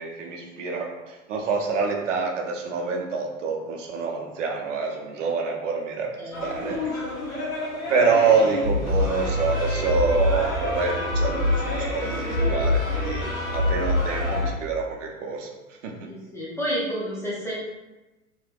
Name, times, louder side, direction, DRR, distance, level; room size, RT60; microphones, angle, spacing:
voice 1, 0.0-6.1 6.4-7.0 7.9-16.1, right 4 dB, 60° right, 1 dB, 0.7 m, -26 dB
sound 1, 6.3-14.5, left 2 dB, 80° left, 1.0 m, -26 dB
voice 2, 16.1-17.5, equal, 5° left, -7 dB, 0.6 m, -30 dB
3.1 x 3.0 x 2.3 m, 1.1 s
figure-of-eight pair, 90°, 41 cm